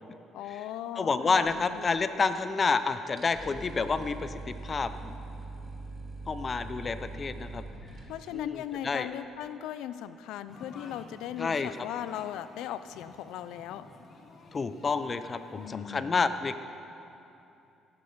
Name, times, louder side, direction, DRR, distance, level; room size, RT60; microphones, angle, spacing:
voice 1, 0.3-1.9 8.1-13.9 15.5-16.2, left 11 dB, 85° left, 13 dB, 0.5 m, -38 dB
voice 2, 1.0-5.1 6.3-7.6 8.3-8.6 8.8-9.1 11.4-11.7 14.5-16.6, left 4 dB, 30° left, 11 dB, 0.8 m, -29 dB
sound 1, 1.4-2.5 2.7-2.8 3.1-8.3, right 2 dB, 30° right, 2.5 m, -43 dB
sound 2, 10.5-15.8, left 3 dB, 50° left, 1.7 m, -52 dB
16.5 x 9.9 x 6.8 m, 2.8 s
cardioid pair, 100°, 0 cm